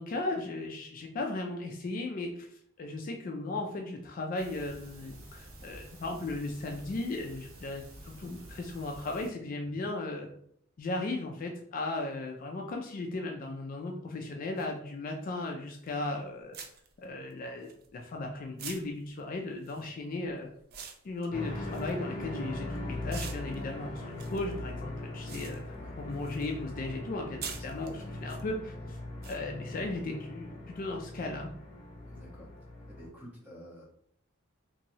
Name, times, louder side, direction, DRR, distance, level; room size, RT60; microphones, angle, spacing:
voice 1, 0.0-2.5 2.8-10.3 10.8-16.6 17.0-20.5 21.0-29.0 29.3-30.5 30.8-31.5, left 2 dB, 40° left, 2 dB, 0.3 m, -36 dB
sound 1, 4.4-9.3, right 1 dB, 85° right, 0.8 m, -50 dB
sound 2, 14.6-14.7 15.9-16.0 16.5-18.2 18.6-22.6 23.1-26.6 26.8-28.4 29.2-29.4, right 6 dB, 50° right, 0.4 m, -46 dB
sound 3, 21.3-33.1, left 1 dB, 25° left, 0.7 m, -40 dB
voice 2, 27.3-28.2 28.8-28.9 32.1-32.5 32.9-33.8, equal, 10° right, -6 dB, 1.0 m, -51 dB
2.9 x 2.6 x 2.7 m, 0.67 s
head